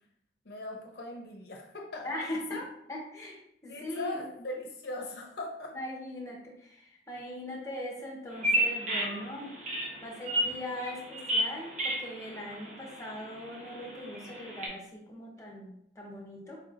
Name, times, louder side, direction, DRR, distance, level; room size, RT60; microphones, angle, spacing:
voice 1, 0.4-2.6 3.7-5.7, left 2 dB, 60° left, 1 dB, 0.6 m, -40 dB
voice 2, 2.0-2.6 2.9-4.2 5.7-9.5 10.0-16.6, left 1 dB, 15° left, -2 dB, 0.8 m, -40 dB
Bird vocalization bird call bird song, 8.3-14.7, right 1 dB, 40° right, 0.9 m, -33 dB
4.5 x 2.8 x 2.5 m, 0.74 s
head